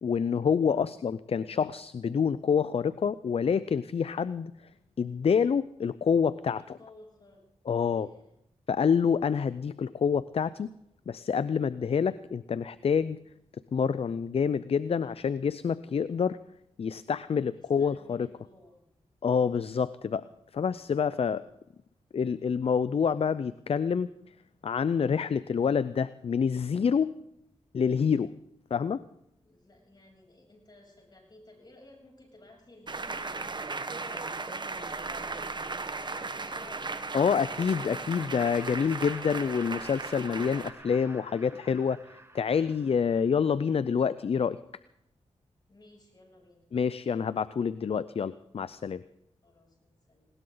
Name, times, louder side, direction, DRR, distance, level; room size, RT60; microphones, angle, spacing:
voice 1, 0.0-4.5 5.0-6.6 7.7-8.1 8.7-10.7 11.1-13.2 13.7-16.4 16.8-18.3 19.2-20.3 20.5-21.4 22.1-24.1 24.6-27.2 27.7-28.3 28.7-29.0 37.1-44.6 46.7-49.0, left 6 dB, 60° left, 16 dB, 0.5 m, -27 dB
voice 2, 0.6-1.0 6.6-7.4 7.8-8.4 17.5-18.8 29.4-36.9 45.7-46.7 49.4-50.3, left 2 dB, 40° left, 1 dB, 7.6 m, -56 dB
sound 1, 32.9-40.7, right 3 dB, 40° right, 1.2 m, -36 dB
Laughter, 38.2-43.5, right 2 dB, 20° right, 1.4 m, -49 dB
20.0 x 18.0 x 3.9 m, 0.78 s
cardioid pair, 55°, 12 cm